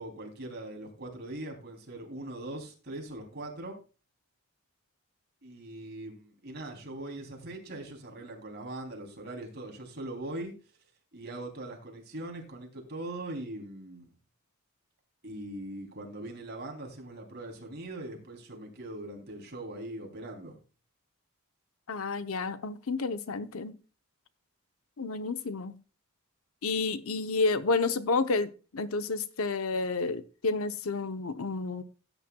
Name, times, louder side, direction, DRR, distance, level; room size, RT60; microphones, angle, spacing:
voice 1, 0.0-3.7 5.4-10.5 11.1-14.1 15.2-20.6, right 1 dB, 50° right, 3.2 m, -41 dB
voice 2, 21.9-23.8 25.0-25.8 26.6-31.8, left 3 dB, 80° left, 0.8 m, -30 dB
16.5 x 9.1 x 2.3 m
head